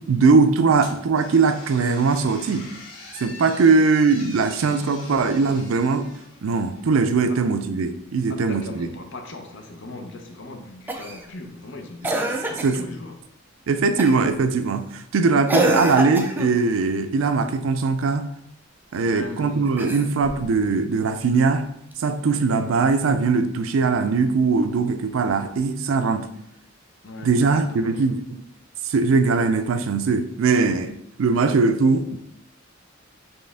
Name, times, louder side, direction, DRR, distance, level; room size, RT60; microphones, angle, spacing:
voice 1, 0.1-2.7 3.2-6.1 6.4-8.9 12.1-12.2 12.6-12.8 13.7-18.3 18.9-21.7 22.0-26.3 27.2-28.4 28.8-30.9 31.2-32.2, right 4 dB, 80° right, 0.4 m, -20 dB
sound 1, 0.8-6.9, left 2 dB, 80° left, 1.5 m, -43 dB
voice 2, 8.3-13.2 19.0-19.7 27.0-28.0, left 2 dB, 65° left, 0.7 m, -38 dB
Cough, 10.9-11.3 12.0-12.8 14.0-14.3 15.5-16.6 19.7-20.4 21.9-22.0, right 1 dB, 10° right, 0.4 m, -25 dB
4.4 x 3.3 x 3.4 m
head